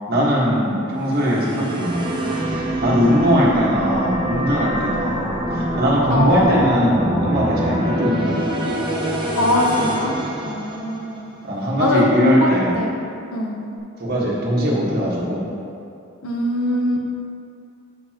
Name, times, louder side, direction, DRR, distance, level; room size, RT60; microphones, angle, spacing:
voice 1, 0.1-2.2 2.5-5.2 5.5-8.5 11.4-12.8 14.0-15.5, equal, 45° right, -6 dB, 1.6 m, -20 dB
sound 1, 1.0-11.2, right 1 dB, 20° right, 1.0 m, -25 dB
voice 2, 6.1-7.0 9.4-11.3 11.8-13.0 13.3-13.7 16.2-17.1, left 1 dB, 80° left, 1 dB, 0.9 m, -21 dB
8.2 x 7.1 x 2.9 m, 2.6 s
head